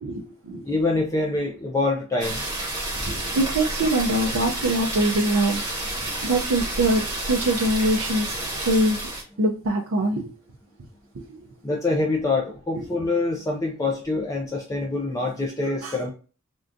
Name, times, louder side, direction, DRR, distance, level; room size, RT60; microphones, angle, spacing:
voice 1, 0.0-0.6 2.9-5.6 5.9-9.0 9.4-10.3 11.1-11.5 12.7-12.9 15.8-16.0, right 1 dB, 75° right, -3 dB, 0.5 m, -24 dB
voice 2, 0.7-2.4 11.6-16.1, left 3 dB, 15° left, 0 dB, 0.4 m, -25 dB
sound 1, 2.2-9.2, right 1 dB, 15° right, 0.9 m, -30 dB
3.6 x 2.3 x 2.5 m, 0.37 s
head